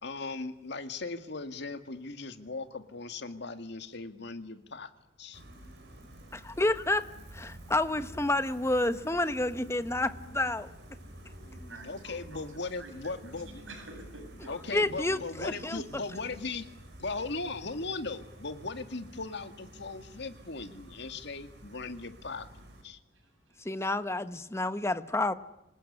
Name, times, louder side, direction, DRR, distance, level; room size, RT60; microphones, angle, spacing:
voice 1, 0.0-4.9 5.2-5.4 11.8-13.6 14.5-16.7 17.0-22.5 22.8-23.0, left 3 dB, 60° left, 2.1 m, -38 dB
Gull seagull, 5.3-22.8, equal, 60° right, 6.9 m, -50 dB
voice 2, 6.3-7.0 7.3-10.7 14.7-15.8 23.6-25.3, left 2 dB, 15° left, 1.1 m, -29 dB
voice 3, 11.7-13.3 13.7-14.7 23.1-23.6, right 2 dB, 80° right, 7.7 m, -49 dB
26.5 x 19.0 x 9.8 m
head